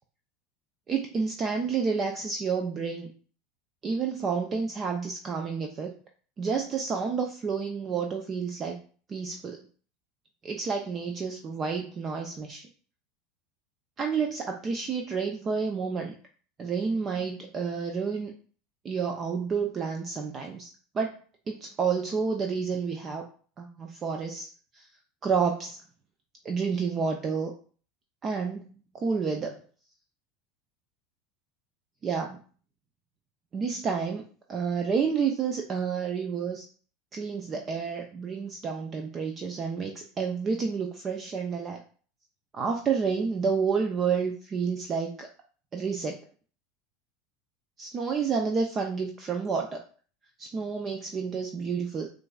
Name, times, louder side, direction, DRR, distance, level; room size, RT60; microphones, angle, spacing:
voice 1, 0.9-3.1 3.8-5.9 6.4-8.8 9.1-9.6 10.4-12.6 14.0-16.2 16.6-18.3 18.8-21.2 21.5-23.3 23.6-24.9 25.2-25.8 26.4-27.5 28.2-29.6 32.0-32.4 33.5-34.2 34.5-36.6 37.1-41.8 42.5-45.3 45.7-46.2 47.8-49.8 50.4-52.1, right 5 dB, 35° right, 3 dB, 0.6 m, -30 dB
7.5 x 2.6 x 2.4 m, 0.41 s
hypercardioid pair, 80°, 0 cm